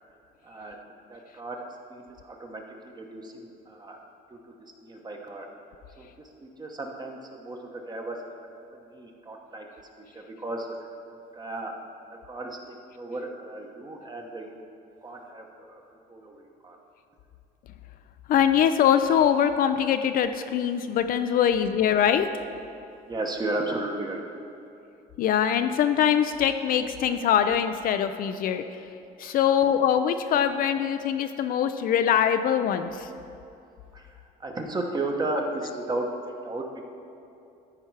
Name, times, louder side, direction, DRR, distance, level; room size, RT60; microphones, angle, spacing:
voice 1, 0.4-0.8 1.1-4.0 4.3-4.5 4.8-5.5 6.0-6.1 6.4-8.2 8.7-9.7 10.1-10.7 11.1-11.7 12.3-14.6 15.0-15.8 16.1-16.8 23.1-24.2 29.2-29.4 33.9-34.1 34.4-36.6, right 2 dB, 25° right, 2 dB, 1.0 m, -34 dB
voice 2, 18.3-22.3 25.2-28.6 29.2-33.1, left 9 dB, 60° left, 9 dB, 0.4 m, -23 dB
13.5 x 4.5 x 4.7 m, 2.6 s
cardioid pair, 110°, 17 cm